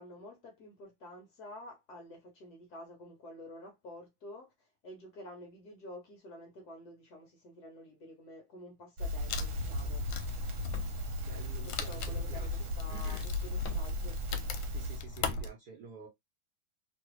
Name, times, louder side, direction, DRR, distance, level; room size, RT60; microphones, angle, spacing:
voice 1, 0.0-10.1 11.6-14.2, left 1 dB, 60° left, 1.0 m, -50 dB
Crackle, 9.0-15.0, left 1 dB, 75° right, 1.5 m, -37 dB
Wood, 9.3-15.5, left 3 dB, 80° left, 1.3 m, -38 dB
voice 2, 11.2-12.5 12.9-13.3 14.6-16.1, right 3 dB, 60° right, 1.2 m, -49 dB
3.3 x 2.3 x 3.0 m
omnidirectional pair, 2.3 m